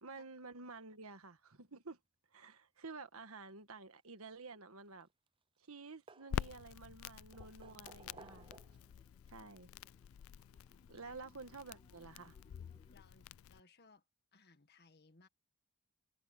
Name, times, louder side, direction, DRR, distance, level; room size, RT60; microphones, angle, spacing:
voice 1, 0.0-2.0 2.3-5.1 5.7-8.5 9.3-9.7 10.9-12.4, right 4 dB, 75° right, 1.6 m, -51 dB
sound 1, 4.7-5.4 5.7-6.8 7.3-9.0 10.2-10.3 11.8-11.9 12.2-12.3, right 3 dB, 25° right, 0.7 m, -59 dB
Crackle, 6.3-13.6, left 8 dB, 65° left, 0.3 m, -47 dB
sound 2, 7.9-13.0, left 1 dB, 30° left, 2.4 m, -71 dB
voice 2, 12.9-14.0 14.3-15.3, left 4 dB, 50° left, 1.8 m, -65 dB
head